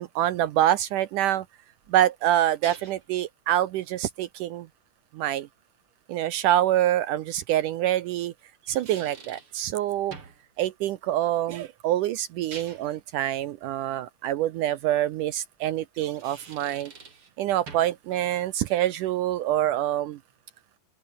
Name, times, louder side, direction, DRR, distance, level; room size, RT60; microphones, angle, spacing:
voice 1, 0.0-1.5 1.9-4.7 5.1-5.5 6.1-8.3 8.7-10.2 10.6-16.9 17.4-20.2, right 12 dB, 85° right, 1.8 m, -26 dB
sound 1, 1.8-3.1 6.4-6.5 8.4-9.6 10.1-10.5 12.3-13.0 15.8-17.3 17.7-18.0, right 5 dB, 35° right, 3.8 m, -45 dB
open air
omnidirectional pair, 4.8 m